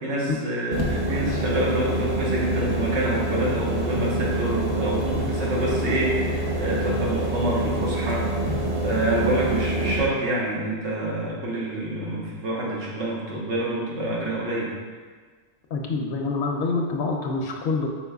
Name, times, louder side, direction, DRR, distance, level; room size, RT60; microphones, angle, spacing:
voice 1, 0.0-8.3 8.8-14.7, right 1 dB, 80° right, -4 dB, 1.3 m, -27 dB
sound 1, 0.7-10.0, right 1 dB, 30° right, 0.5 m, -26 dB
voice 2, 15.7-17.9, left 3 dB, 65° left, 0 dB, 0.7 m, -26 dB
5.1 x 4.3 x 2.3 m, 1.5 s
omnidirectional pair, 1.1 m